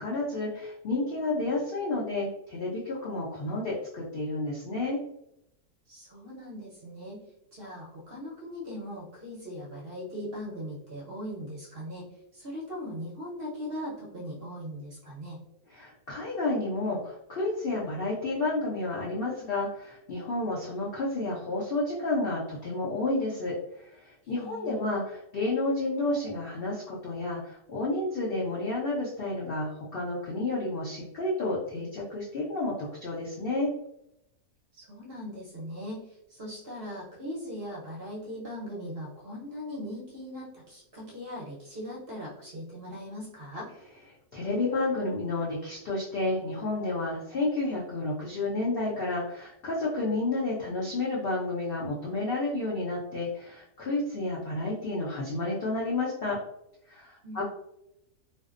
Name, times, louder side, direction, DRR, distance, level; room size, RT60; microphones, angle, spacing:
voice 1, 0.0-5.0 15.7-23.5 24.0-33.7 44.3-56.4 56.9-57.4, left 2 dB, 80° left, -5 dB, 0.5 m, -31 dB
voice 2, 5.9-7.2 7.5-12.1 12.3-15.4 24.4-24.9 34.7-36.0 36.3-43.7 57.2-57.4, equal, 50° right, -5 dB, 0.8 m, -39 dB
2.5 x 2.0 x 2.4 m, 0.81 s
omnidirectional pair, 1.6 m